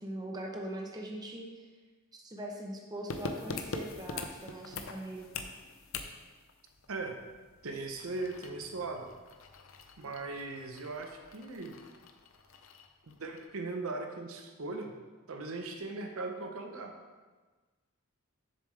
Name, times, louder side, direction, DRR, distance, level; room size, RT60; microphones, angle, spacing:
voice 1, 0.0-1.6 2.2-5.3, right 1 dB, 20° right, 0 dB, 0.7 m, -41 dB
sound 1, 3.1-13.6 13.9-14.0, left 4 dB, 70° left, 0.6 m, -44 dB
voice 2, 7.6-9.1 10.0-11.7 13.2-14.9 15.3-16.9, right 3 dB, 75° right, 4 dB, 0.8 m, -39 dB
7.2 x 6.8 x 3.3 m, 1.3 s
head